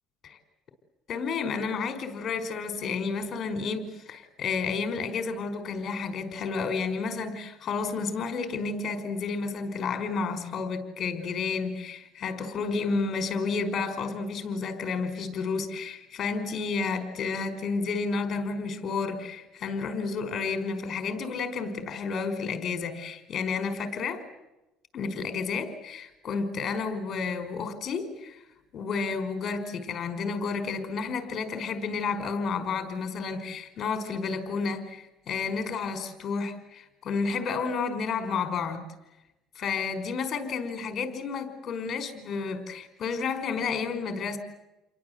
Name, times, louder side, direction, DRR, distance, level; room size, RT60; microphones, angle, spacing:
voice 1, 1.1-24.2 24.9-28.4 28.7-38.9 39.6-44.4, left 4 dB, 40° left, 9 dB, 5.2 m, -31 dB
30.0 x 23.5 x 8.1 m, 0.93 s
cardioid pair, 135°, 0 cm